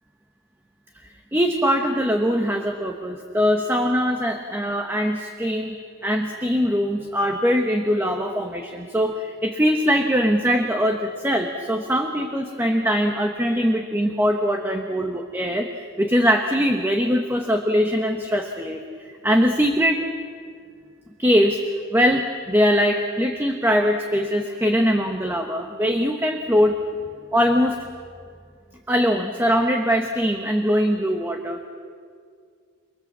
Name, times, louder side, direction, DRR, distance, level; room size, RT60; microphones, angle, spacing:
voice 1, 1.3-5.8 6.0-20.1 21.2-21.6 21.9-26.8 27.3-27.8 28.9-31.6, equal, 10° right, 4 dB, 1.2 m, -22 dB
29.0 x 22.0 x 7.4 m, 2.2 s
head